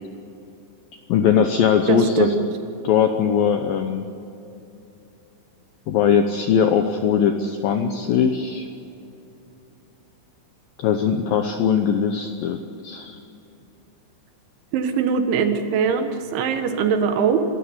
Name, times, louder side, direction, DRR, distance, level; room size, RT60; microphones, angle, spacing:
voice 1, 1.1-2.3 2.8-4.1 5.9-8.7 10.8-13.2, left 7 dB, 80° left, 6 dB, 2.0 m, -20 dB
voice 2, 1.9-2.4 14.7-17.4, right 6 dB, 80° right, 7 dB, 3.8 m, -21 dB
27.0 x 13.5 x 9.8 m, 2.8 s
omnidirectional pair, 5.4 m